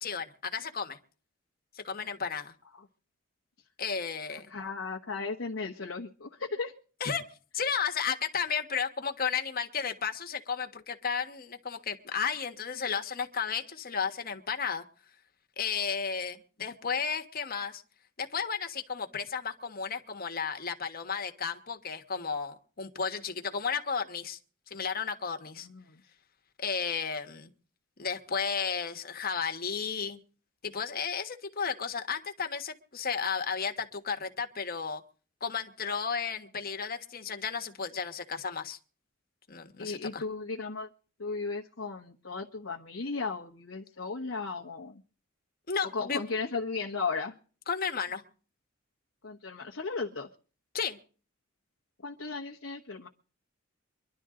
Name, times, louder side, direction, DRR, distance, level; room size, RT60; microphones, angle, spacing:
voice 1, 0.0-1.0 1.7-2.5 3.8-4.5 7.0-7.2 7.5-14.8 15.6-17.8 18.2-24.4 24.7-25.7 26.6-27.5 28.0-30.2 30.6-35.0 35.4-38.8 39.5-40.2 45.7-46.2 47.7-48.2 50.7-51.0, left 6 dB, 45° left, 6 dB, 1.5 m, -33 dB
voice 2, 4.5-6.7 25.6-26.0 39.8-40.9 41.2-45.0 45.9-47.4 49.2-50.3 52.0-53.1, left 4 dB, 70° left, 0 dB, 1.2 m, -35 dB
24.0 x 12.0 x 3.8 m, 0.40 s
head